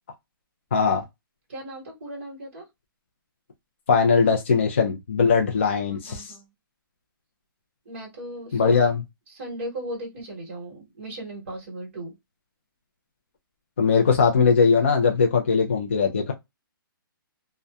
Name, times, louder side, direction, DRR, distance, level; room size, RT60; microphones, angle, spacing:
voice 1, 0.7-1.0 3.9-6.4 8.5-9.0 13.8-16.3, left 5 dB, 30° left, 0.3 m, -20 dB
voice 2, 1.5-2.7 5.9-6.5 7.8-8.8 9.3-12.1, right 1 dB, 35° right, 1.2 m, -37 dB
2.6 x 2.1 x 2.2 m
hypercardioid pair, 175°, 12 cm